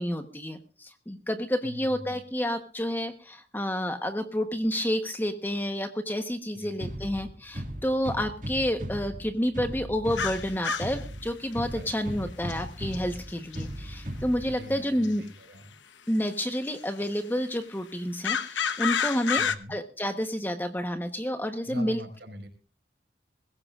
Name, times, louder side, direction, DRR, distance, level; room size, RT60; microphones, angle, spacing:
voice 1, 0.0-15.2 16.1-22.0, equal, 10° left, 7 dB, 1.0 m, -30 dB
voice 2, 1.6-2.2 6.5-6.8 11.7-12.3 14.5-15.6 19.4-19.8 21.6-22.5, equal, 70° right, 2 dB, 5.1 m, -43 dB
sound 1, 6.8-14.8, equal, 45° right, 2.1 m, -38 dB
sound 2, 10.1-11.0 12.5-12.6 12.9-13.0 13.5-13.6 15.0-15.1 16.3-16.4 18.2-19.5, left 7 dB, 85° left, 1.0 m, -28 dB
22.5 x 15.5 x 2.5 m, 0.38 s
head